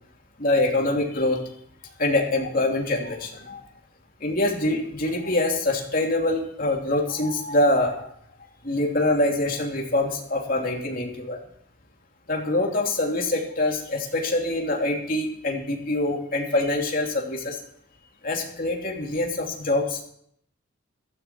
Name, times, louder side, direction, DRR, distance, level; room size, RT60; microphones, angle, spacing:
voice 1, 0.4-1.5 1.8-3.6 4.2-8.1 8.6-11.4 12.3-17.6 18.2-20.0, left 2 dB, 45° left, 1 dB, 2.9 m, -25 dB
15.0 x 14.0 x 4.5 m, 0.67 s
head